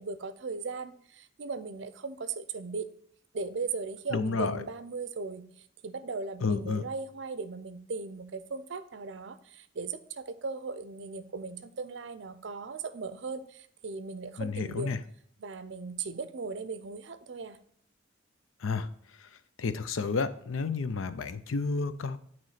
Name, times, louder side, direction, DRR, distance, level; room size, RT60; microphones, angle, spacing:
voice 1, 0.0-2.9 3.3-5.5 5.8-14.9 15.4-17.6, right 4 dB, 65° right, 12 dB, 0.5 m, -38 dB
voice 2, 4.1-4.6 6.4-6.8 14.4-15.0 18.6-18.9 19.6-22.2, left 4 dB, 90° left, 12 dB, 0.5 m, -30 dB
9.0 x 3.1 x 5.6 m, 0.65 s
head